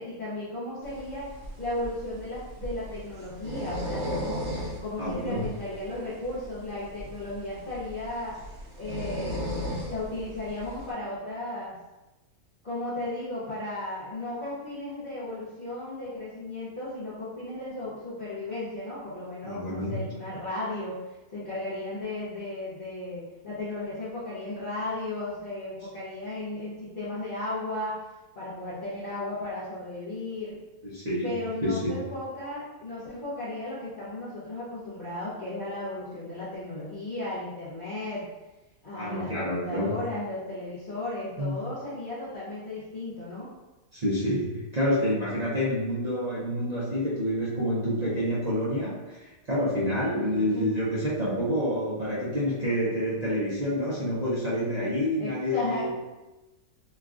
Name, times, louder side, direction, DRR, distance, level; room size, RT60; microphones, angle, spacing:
voice 1, 0.0-4.4 4.8-8.4 8.8-9.5 9.8-11.7 12.6-21.0 21.3-28.1 28.4-30.6 31.2-38.3 38.8-43.5 50.1-50.7 55.2-56.0, left 2 dB, 45° left, -11 dB, 0.7 m, -35 dB
sound 1, 0.8-10.9, equal, 60° right, 0.9 m, -37 dB
voice 2, 5.0-5.4 19.4-20.0 30.8-31.9 38.9-39.9 41.4-41.6 43.9-56.0, equal, 45° right, -8 dB, 0.5 m, -28 dB
3.1 x 2.4 x 2.4 m, 1.1 s
omnidirectional pair, 1.5 m